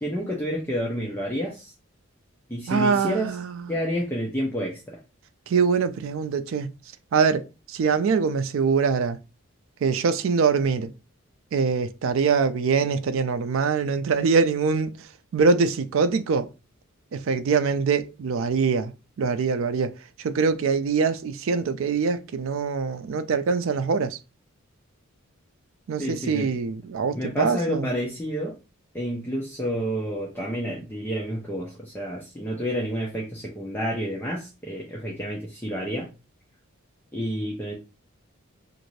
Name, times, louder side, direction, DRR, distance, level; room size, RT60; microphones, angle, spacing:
voice 1, 0.0-1.7 2.5-3.4 3.7-5.0 26.0-26.5 27.1-28.6 28.9-36.1 37.1-37.7, equal, 10° left, 0.5 m, -29 dB
voice 2, 2.7-3.6 5.5-6.7 7.1-9.2 9.8-10.9 11.5-14.9 15.3-16.5 17.1-18.9 19.2-19.9 20.2-24.2 25.9-27.9, right 5 dB, 70° right, 0.4 m, -23 dB
2.5 x 2.5 x 3.1 m
head